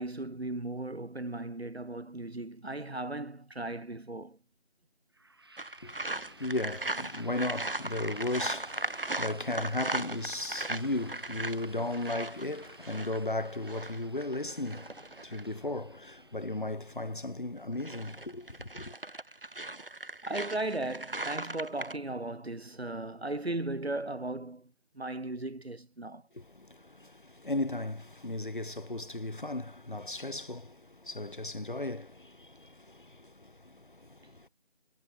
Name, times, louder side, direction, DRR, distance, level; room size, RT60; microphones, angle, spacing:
voice 1, 0.0-4.4 20.2-26.2, right 2 dB, 75° right, 4.2 m, -36 dB
sound 1, 5.1-18.9, right 2 dB, 25° right, 6.3 m, -55 dB
sound 2, 5.6-15.5 17.6-22.0, right 2 dB, 60° right, 3.2 m, -38 dB
voice 2, 5.8-19.0 26.3-34.5, left 2 dB, 50° left, 5.0 m, -36 dB
figure-of-eight pair, 180°, 32 cm